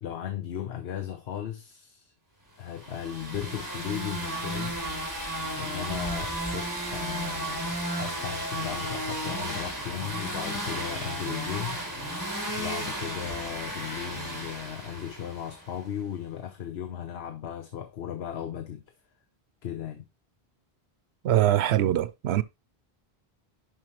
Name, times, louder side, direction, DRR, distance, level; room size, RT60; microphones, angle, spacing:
voice 1, 0.0-2.1 2.6-4.8 5.6-11.8 12.5-18.8 19.6-20.0, left 10 dB, 75° left, 1.1 m, -36 dB
sound 1, 2.8-15.7, right 1 dB, 15° right, 3.0 m, -34 dB
voice 2, 21.2-22.4, right 12 dB, 80° right, 0.9 m, -23 dB
11.0 x 5.2 x 3.0 m
omnidirectional pair, 1.1 m